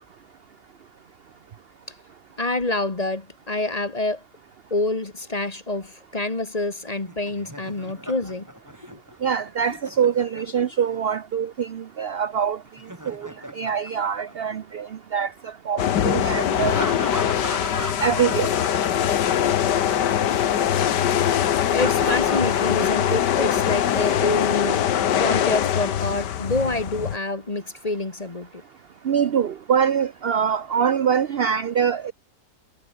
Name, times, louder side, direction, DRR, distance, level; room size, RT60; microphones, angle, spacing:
voice 1, 2.4-4.2 4.7-8.5 8.9-9.0 21.7-28.6, left 2 dB, 25° left, 1.5 m, -27 dB
Laughter, 6.9-11.0 12.6-14.8 16.5-19.6 19.8-20.0 21.5-23.6, right 1 dB, 10° right, 4.1 m, -36 dB
voice 2, 9.2-12.6 13.1-13.3 13.6-16.8 18.0-18.6 29.0-32.1, right 7 dB, 60° right, 0.6 m, -24 dB
sound 1, 15.8-27.2, left 10 dB, 75° left, 1.7 m, -22 dB
omnidirectional pair, 1.9 m